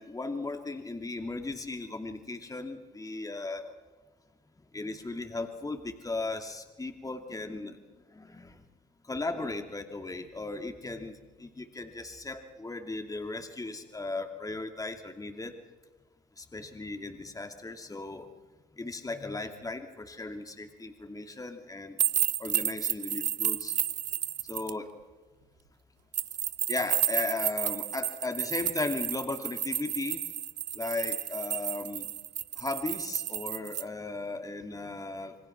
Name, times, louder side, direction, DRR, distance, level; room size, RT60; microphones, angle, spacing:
voice 1, 0.0-3.8 4.7-7.8 8.1-8.6 9.0-15.6 16.4-18.3 18.8-22.0 22.4-23.7 24.5-24.9 26.7-30.2 30.7-32.1 32.6-35.4, left 3 dB, 15° left, 6 dB, 2.7 m, -36 dB
sound 1, 22.0-24.7 26.1-33.8, right 10 dB, 90° right, 0.7 m, -31 dB
27.5 x 24.0 x 6.1 m, 1.3 s
hypercardioid pair, 55°, 21 cm